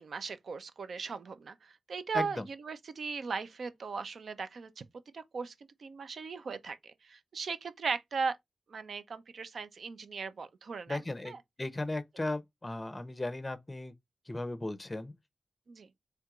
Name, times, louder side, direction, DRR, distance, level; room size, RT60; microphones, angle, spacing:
voice 1, 0.0-4.8 5.1-5.5 5.8-8.4 8.7-11.0 11.3-11.4 15.7-15.9, right 5 dB, 70° right, 0.6 m, -38 dB
voice 2, 2.1-2.5 10.9-13.9 14.3-15.1, left 2 dB, 20° left, 0.7 m, -36 dB
4.5 x 3.5 x 2.4 m
wide cardioid pair, 80°, 0 cm